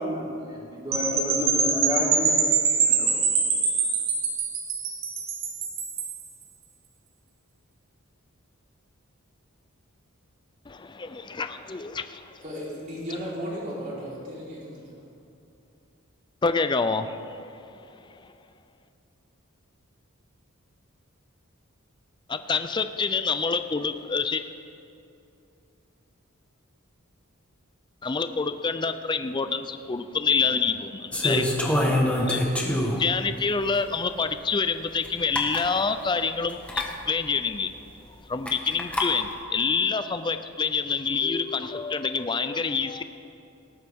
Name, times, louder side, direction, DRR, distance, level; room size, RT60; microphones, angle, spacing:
voice 1, 0.0-2.3 2.8-3.2, equal, 20° right, -6 dB, 3.4 m, -30 dB
sound 1, 0.9-6.2, right 5 dB, 65° right, 1.8 m, -24 dB
voice 2, 10.7-12.2 16.4-17.2 22.3-24.4 28.0-31.9 32.2-32.4 32.7-37.7 38.3-43.0, left 5 dB, 20° left, 10 dB, 0.4 m, -27 dB
voice 3, 12.4-14.8, equal, 40° right, -6 dB, 4.0 m, -35 dB
sound 2, 31.1-33.1 33.8-33.9 35.0-35.1 35.3-35.7 36.6-36.9 38.5-39.1, left 1 dB, 5° left, 1.3 m, -25 dB
18.5 x 12.0 x 3.6 m, 2.6 s
head